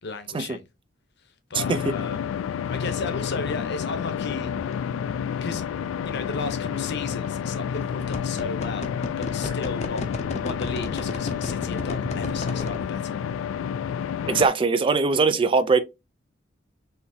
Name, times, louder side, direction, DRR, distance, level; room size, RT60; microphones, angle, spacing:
voice 1, 0.0-0.6 1.5-2.3 2.7-4.5 5.4-5.6 6.0-8.9 9.2-10.0 10.4-13.2, left 4 dB, 60° left, 0.8 m, -34 dB
sound 1, 1.5-14.5, left 7 dB, 85° left, 0.3 m, -29 dB
voice 2, 1.5-1.9 14.3-15.8, right 4 dB, 25° right, 0.3 m, -21 dB
sound 2, 4.6-4.7 7.1-7.3 7.7-12.9, left 2 dB, 35° left, 0.6 m, -33 dB
4.3 x 2.8 x 2.7 m
head